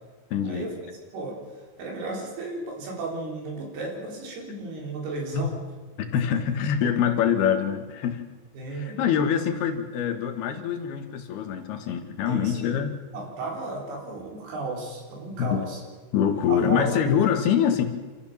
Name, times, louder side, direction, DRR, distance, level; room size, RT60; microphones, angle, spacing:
voice 1, 0.3-0.7 5.3-5.5 6.0-8.2 8.8-12.9 15.4-15.6 16.1-17.9, left 8 dB, 80° left, 6 dB, 3.5 m, -24 dB
voice 2, 1.8-5.6 8.6-9.0 12.3-12.6 13.1-15.8 16.5-16.9, right 2 dB, 85° right, -1 dB, 5.8 m, -34 dB
27.0 x 14.0 x 7.1 m, 1.3 s
omnidirectional pair, 4.5 m